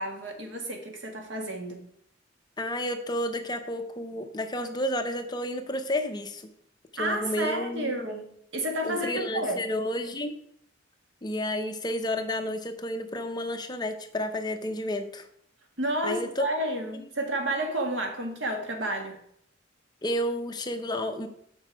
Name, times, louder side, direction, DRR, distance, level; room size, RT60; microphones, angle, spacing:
voice 1, 0.0-1.9 7.0-9.6 15.8-19.2, right 1 dB, 80° right, 1.7 m, -31 dB
voice 2, 2.6-6.5 7.0-8.1 8.8-10.3 11.2-15.2 16.0-16.5 20.0-21.3, left 1 dB, 25° left, 0.7 m, -31 dB
6.7 x 6.5 x 4.7 m
head